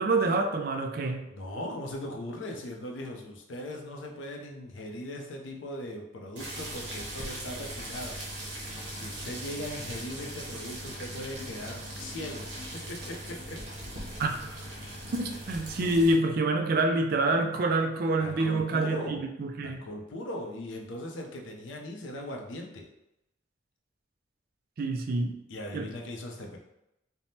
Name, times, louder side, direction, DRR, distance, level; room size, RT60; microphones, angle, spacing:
voice 1, 0.0-1.2 14.2-14.3 15.1-19.8 24.8-25.4 25.7-25.9, right 2 dB, 50° right, 4 dB, 0.3 m, -27 dB
voice 2, 1.3-8.2 8.6-13.6 14.9-15.1 18.2-19.2 19.6-22.9 25.5-26.6, left 1 dB, 80° left, 1 dB, 0.5 m, -39 dB
sound 1, 6.4-16.1, right 1 dB, 85° right, 0.8 m, -40 dB
3.3 x 2.0 x 2.7 m, 0.86 s
head